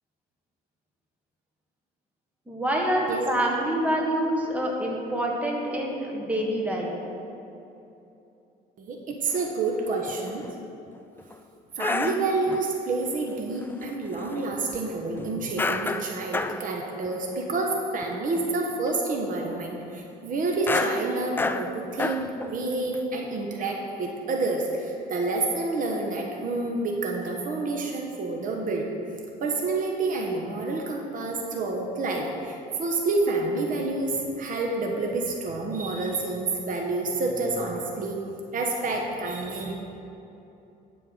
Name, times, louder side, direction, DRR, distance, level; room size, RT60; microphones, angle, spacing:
voice 1, 2.5-6.9, right 1 dB, 10° right, -2 dB, 1.6 m, -26 dB
voice 2, 8.8-10.5 11.8-28.9 29.4-38.2 38.5-39.7, right 3 dB, 55° right, 1 dB, 1.1 m, -28 dB
sound 1, 9.3-9.4 9.9-10.5 10.9-11.3 11.8-12.7 13.6-14.4 14.7-14.8 15.6-16.7 17.1-17.2 17.5-17.7 18.0-18.4 18.7-18.9 20.6-22.6 22.9-23.0, left 3 dB, 10° left, 0.3 m, -30 dB
11.0 x 4.6 x 6.5 m, 2.9 s
cardioid pair, 110°, 17 cm